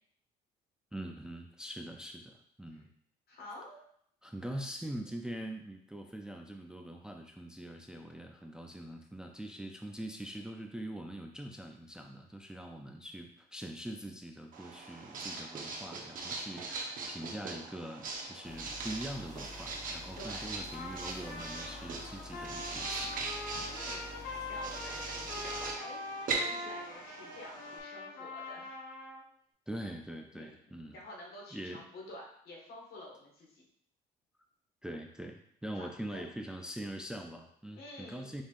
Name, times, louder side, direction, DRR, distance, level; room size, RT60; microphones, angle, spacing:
voice 1, 0.9-2.9 4.2-23.3 23.5-23.7 29.7-31.0 31.5-31.8 34.8-38.4, right 1 dB, 5° right, 3 dB, 0.3 m, -43 dB
voice 2, 3.3-3.8 20.1-20.7 23.7-28.7 30.3-30.6 30.9-33.6 35.7-36.3 37.7-38.3, left 1 dB, 65° left, -2 dB, 1.6 m, -49 dB
Writing, 14.5-27.8, right 3 dB, 55° right, 0.9 m, -40 dB
sound 1, 18.4-25.7, left 2 dB, 20° left, 0.7 m, -49 dB
Trumpet, 20.7-29.2, left 2 dB, 80° left, 1.0 m, -43 dB
5.3 x 3.4 x 2.4 m, 0.66 s
cardioid pair, 110°, 17 cm